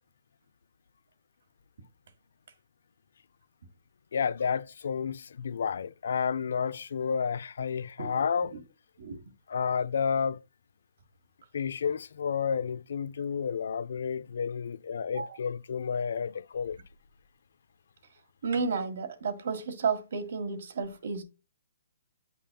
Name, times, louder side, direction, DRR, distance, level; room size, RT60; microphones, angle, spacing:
voice 1, 4.1-8.5 9.5-10.4 11.5-16.8, left 6 dB, 70° left, 0.4 m, -31 dB
voice 2, 18.4-21.2, right 5 dB, 65° right, 1.6 m, -32 dB
8.6 x 5.4 x 2.3 m
hypercardioid pair, 155°, 0 cm